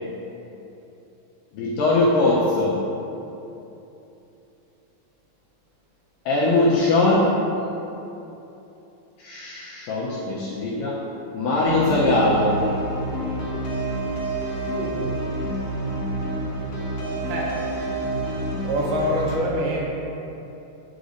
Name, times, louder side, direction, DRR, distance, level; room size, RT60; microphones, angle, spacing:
voice 1, 1.5-2.8 6.3-7.4 9.2-11.0 11.3-12.6, left 2 dB, 80° left, -6 dB, 2.0 m, -21 dB
sound 1, 11.6-19.4, right 1 dB, 60° left, 1.6 m, -28 dB
voice 2, 14.5-15.1 17.2-17.6 18.6-19.9, equal, 75° right, -3 dB, 2.9 m, -26 dB
9.2 x 6.5 x 2.6 m, 2.9 s
omnidirectional pair, 4.6 m